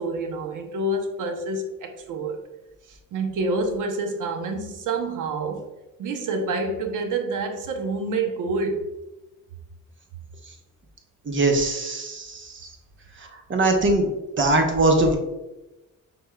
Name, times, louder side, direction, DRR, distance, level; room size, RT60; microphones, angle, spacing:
voice 1, 0.0-2.4 2.9-5.7 6.0-8.9, right 2 dB, 65° right, 5 dB, 0.8 m, -27 dB
voice 2, 11.3-12.5 13.5-14.1 14.4-15.2, right 2 dB, 35° right, 3 dB, 0.9 m, -21 dB
5.4 x 3.5 x 2.3 m, 1.0 s
cardioid pair, 95°, 33 cm